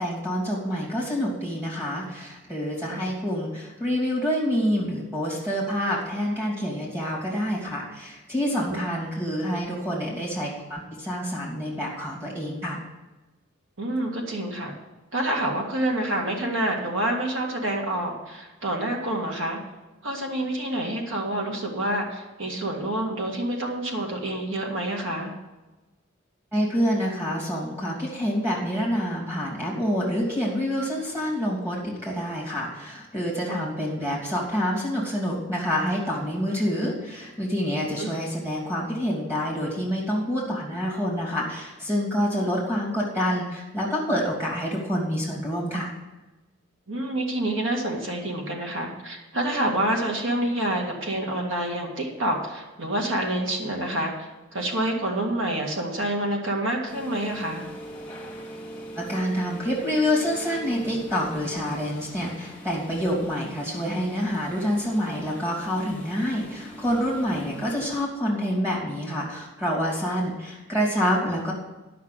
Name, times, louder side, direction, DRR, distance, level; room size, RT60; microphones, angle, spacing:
voice 1, 0.0-12.8 26.5-45.9 58.9-71.5, equal, 10° right, -3 dB, 2.8 m, -27 dB
voice 2, 13.8-14.7 15.1-19.6 20.0-25.3 33.5-33.7 38.0-38.1 46.9-57.7, right 1 dB, 70° right, 0 dB, 2.0 m, -27 dB
sound 1, 56.9-68.1, equal, 10° left, 1.7 m, -41 dB
11.0 x 6.0 x 7.7 m, 1.1 s
head